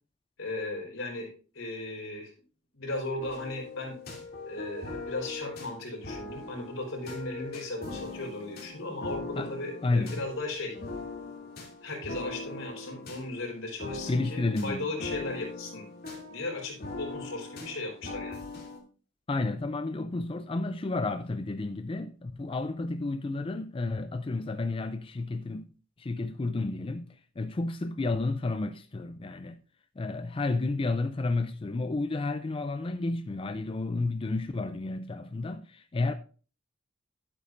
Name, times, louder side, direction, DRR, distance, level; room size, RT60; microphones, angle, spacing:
voice 1, 0.4-2.3 2.7-4.0 4.4-10.8 11.8-15.9 16.3-18.4, left 2 dB, 85° left, 4.2 m, -36 dB
sound 1, 3.2-18.8, left 3 dB, 50° left, 2.7 m, -41 dB
voice 2, 9.8-10.3 14.1-14.9 19.3-25.7 26.0-29.6 30.0-36.1, left 2 dB, 25° left, 0.4 m, -31 dB
11.5 x 8.5 x 2.6 m
head